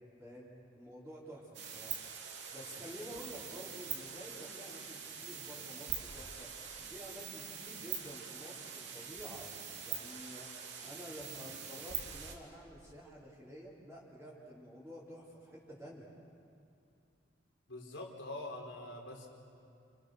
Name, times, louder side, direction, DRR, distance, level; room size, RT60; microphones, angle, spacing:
voice 1, 0.7-6.5 6.9-9.5 9.8-10.5 10.8-16.1, equal, 5° right, -10 dB, 4.4 m, -50 dB
sound 1, 1.5-12.3, right 7 dB, 60° right, 3.0 m, -44 dB
voice 2, 17.7-19.3, left 2 dB, 75° left, 0 dB, 4.5 m, -44 dB
30.0 x 29.5 x 6.7 m, 2.5 s
head